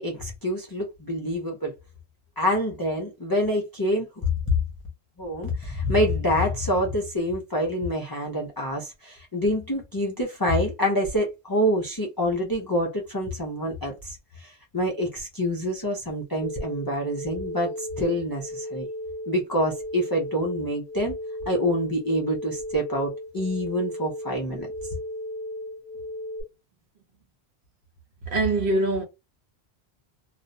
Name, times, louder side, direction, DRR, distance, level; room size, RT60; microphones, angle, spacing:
voice 1, 0.0-1.7 2.4-4.3 5.2-18.9 19.3-21.1 21.5-24.7, equal, 35° left, 0.4 m, -26 dB
sound 1, 16.4-26.4, left 1 dB, 70° left, 0.8 m, -35 dB
voice 2, 28.3-29.0, right 2 dB, 60° right, 0.8 m, -23 dB
2.4 x 2.0 x 2.5 m
omnidirectional pair, 1.1 m